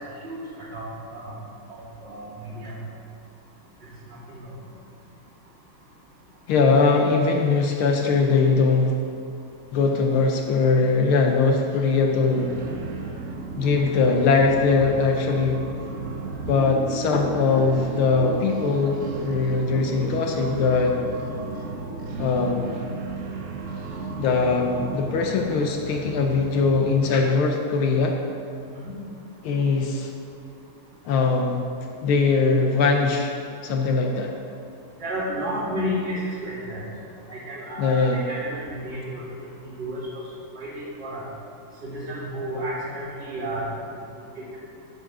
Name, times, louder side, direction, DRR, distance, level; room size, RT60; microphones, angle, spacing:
voice 1, 0.7-1.4 1.7-2.7 4.1-4.4 28.6-28.9 35.0-36.9 37.3-39.5 39.8-40.1 40.5-41.2 41.8-43.7 44.4-44.5, equal, 25° right, -10 dB, 3.0 m, -32 dB
voice 2, 6.5-9.0 9.7-12.5 13.6-15.6 16.5-21.0 22.2-22.7 24.2-28.2 29.4-30.1 31.0-31.7 32.0-33.3 33.6-34.4 37.8-38.3, left 4 dB, 80° left, 2 dB, 1.6 m, -21 dB
sound 1, 12.3-26.8, right 3 dB, 60° right, 0.8 m, -34 dB
Piano, 16.6-23.4, right 9 dB, 80° right, 1.9 m, -42 dB
10.0 x 6.3 x 6.0 m, 2.4 s
omnidirectional pair, 2.3 m